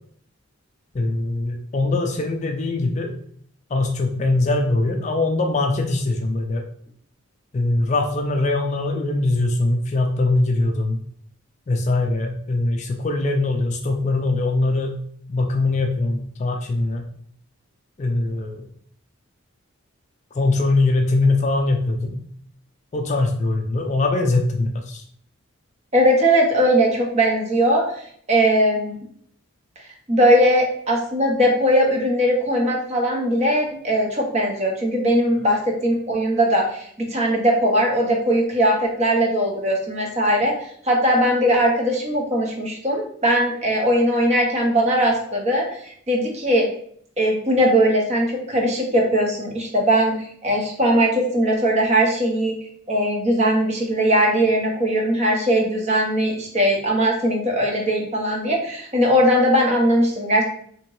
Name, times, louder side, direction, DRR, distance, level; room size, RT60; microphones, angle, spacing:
voice 1, 0.9-3.1 3.7-6.6 7.5-11.0 11.7-15.0 15.3-17.0 18.0-18.6 20.3-22.2 22.9-25.0, left 2 dB, 35° left, 3 dB, 0.3 m, -22 dB
voice 2, 25.9-27.8 28.3-29.0 30.1-40.5 40.8-46.7 47.2-52.6 52.9-60.5, equal, 30° right, 0 dB, 0.7 m, -19 dB
3.5 x 2.8 x 3.0 m, 0.65 s
head